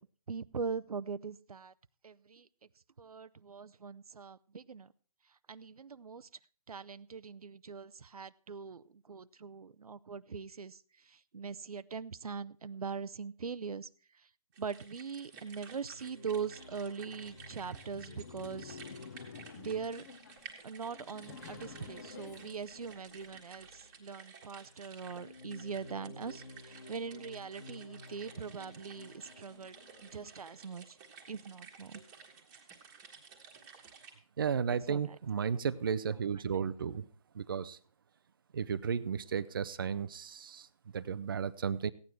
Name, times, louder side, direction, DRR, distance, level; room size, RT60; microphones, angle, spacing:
voice 1, 0.3-1.7 2.0-2.5 3.0-4.9 5.5-6.3 6.7-13.9 14.2-14.3 14.6-18.8 19.5-20.0 20.6-31.0 31.3-32.0 34.9-35.4, right 5 dB, 90° right, 15 dB, 0.6 m, -42 dB
sound 1, 14.5-34.1, right 6 dB, 15° right, 1.5 m, -54 dB
sound 2, 15.5-24.0 24.6-30.3, left 1 dB, 90° left, 1.9 m, -54 dB
Laughter, 17.1-23.4, left 6 dB, 30° left, 0.8 m, -50 dB
voice 2, 34.4-37.1 37.3-37.8 38.5-40.7 40.9-41.9, right 7 dB, 35° right, 14 dB, 0.5 m, -34 dB
15.5 x 9.4 x 4.5 m, 0.41 s
hypercardioid pair, 165°, 19 cm